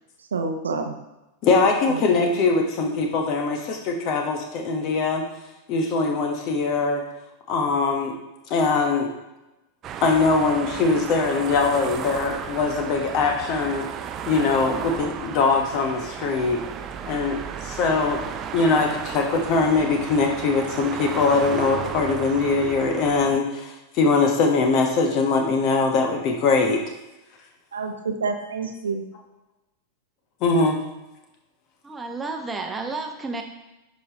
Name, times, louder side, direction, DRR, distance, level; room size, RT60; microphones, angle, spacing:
voice 1, 0.3-1.0 1.9-2.0 27.7-29.0, right 4 dB, 70° right, 5 dB, 0.8 m, -28 dB
voice 2, 1.4-5.2 5.7-7.0 7.5-8.1 8.5-9.1 10.0-13.8 14.3-16.6 17.0-18.2 18.5-26.8 30.4-30.8, left 4 dB, 40° left, 3 dB, 1.3 m, -22 dB
sound 1, 9.8-23.4, right 8 dB, 30° right, 0.5 m, -34 dB
voice 3, 31.8-33.4, right 3 dB, 15° right, 4 dB, 1.0 m, -31 dB
10.0 x 5.2 x 3.0 m, 0.99 s
figure-of-eight pair, 90°, 0 cm